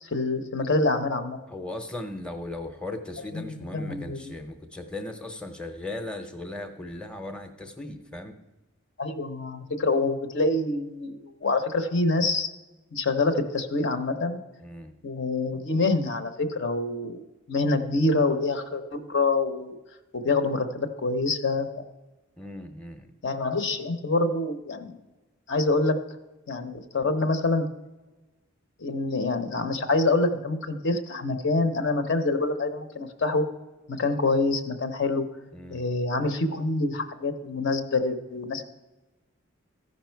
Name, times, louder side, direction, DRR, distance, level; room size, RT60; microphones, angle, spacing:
voice 1, 0.0-1.4 3.3-4.3 9.0-12.5 12.9-14.4 15.0-17.2 17.5-19.8 20.1-21.8 23.2-25.0 25.5-26.0 26.5-27.7 28.8-33.4 33.9-35.3 35.7-38.7, left 3 dB, 60° left, 8 dB, 0.8 m, -26 dB
voice 2, 1.5-8.4 14.6-14.9 22.4-23.1 35.5-35.8, left 2 dB, 5° left, 5 dB, 0.7 m, -37 dB
14.0 x 5.4 x 4.5 m, 1.1 s
head